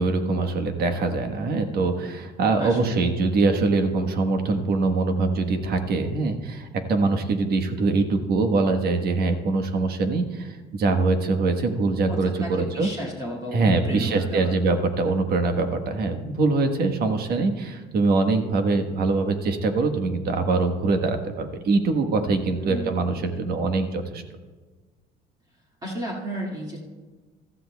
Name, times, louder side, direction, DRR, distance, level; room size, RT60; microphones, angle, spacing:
voice 1, 0.0-12.9 13.5-24.2, right 3 dB, 65° right, 6 dB, 1.3 m, -23 dB
voice 2, 2.6-3.1 12.1-14.5 22.6-23.0 25.8-26.8, right 1 dB, 25° right, -4 dB, 2.1 m, -33 dB
15.5 x 13.5 x 2.3 m, 1.4 s
cardioid pair, 110°, 17 cm